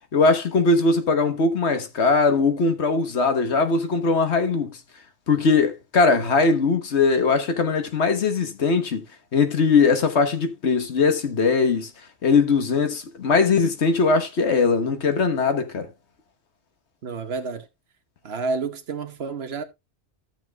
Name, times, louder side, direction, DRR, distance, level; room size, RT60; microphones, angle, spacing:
voice 1, 0.1-4.8 5.3-9.0 9.3-11.9 12.2-15.9, left 4 dB, 75° left, 1.5 m, -20 dB
voice 2, 17.0-17.7 18.2-19.6, right 4 dB, 65° right, 1.2 m, -29 dB
14.0 x 7.6 x 2.3 m
omnidirectional pair, 1.1 m